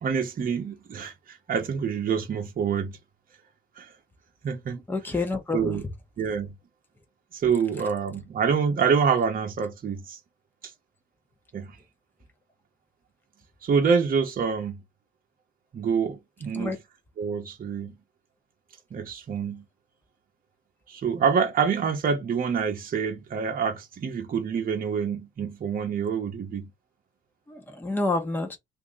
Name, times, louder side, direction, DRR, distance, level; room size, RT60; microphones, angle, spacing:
voice 1, 0.0-3.0 3.8-3.9 4.4-4.8 5.5-5.8 6.2-6.5 7.3-10.2 10.6-10.7 11.5-11.8 13.6-14.8 15.7-16.7 17.2-17.9 18.9-19.6 20.9-26.7, right 6 dB, 45° right, 0.9 m, -26 dB
voice 2, 4.9-5.8 16.5-16.8 27.5-28.6, left 3 dB, 10° left, 0.8 m, -28 dB
2.9 x 2.6 x 3.7 m
cardioid pair, 90°, 20 cm